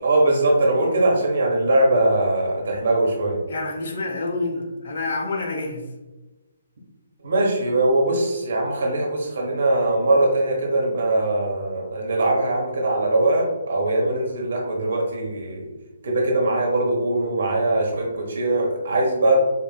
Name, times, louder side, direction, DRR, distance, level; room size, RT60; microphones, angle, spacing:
voice 1, 0.0-3.4 7.2-15.7 16.0-19.4, right 2 dB, 55° right, -1 dB, 1.0 m, -21 dB
voice 2, 3.5-5.8, left 2 dB, 55° left, 2 dB, 0.7 m, -28 dB
5.2 x 2.4 x 2.3 m, 1.1 s
figure-of-eight pair, 135°, 0 cm